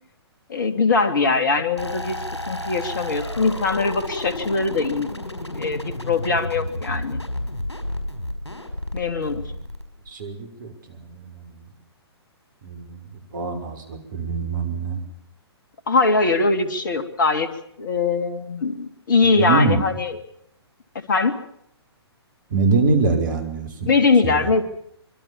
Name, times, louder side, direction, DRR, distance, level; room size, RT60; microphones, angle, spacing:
voice 1, 0.5-2.2 2.5-5.1 5.5-7.2 8.9-9.5 15.9-17.5 17.8-20.1 21.1-21.4 23.9-24.6, left 4 dB, 50° left, 9 dB, 2.8 m, -21 dB
sound 1, 1.8-10.2, left 1 dB, 80° left, 5.6 m, -31 dB
voice 2, 10.1-11.7 12.6-15.0 19.4-19.8 22.5-23.9 24.2-24.5, right 4 dB, 45° right, 7 dB, 5.7 m, -24 dB
25.5 x 23.0 x 7.3 m, 0.71 s
figure-of-eight pair, 125°, 14 cm